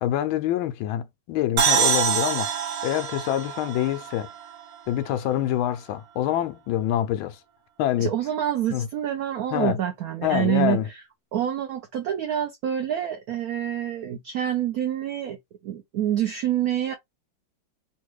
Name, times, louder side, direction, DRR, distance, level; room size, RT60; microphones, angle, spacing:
voice 1, 0.0-2.6 2.8-4.3 4.9-7.4 7.8-8.1 8.7-8.9 9.5-9.8 10.2-10.9, left 12 dB, 80° left, 1.4 m, -26 dB
sound 1, 1.6-5.1, right 7 dB, 65° right, 1.1 m, -25 dB
voice 2, 8.0-10.8 11.3-15.4 15.6-16.9, right 11 dB, 90° right, 0.8 m, -27 dB
3.8 x 2.3 x 3.1 m
omnidirectional pair, 2.2 m